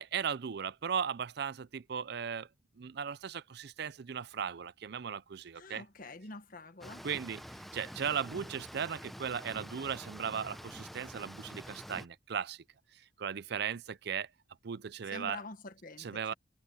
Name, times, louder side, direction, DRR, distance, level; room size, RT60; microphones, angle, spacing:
voice 1, 0.0-2.5 2.8-5.8 7.0-12.6 12.9-14.3 14.6-15.4 16.0-16.3, right 7 dB, 60° right, 0.5 m, -37 dB
voice 2, 5.6-7.0 15.1-16.3, left 3 dB, 50° left, 1.5 m, -46 dB
sound 1, 6.8-12.1, equal, ahead, 0.7 m, -47 dB
head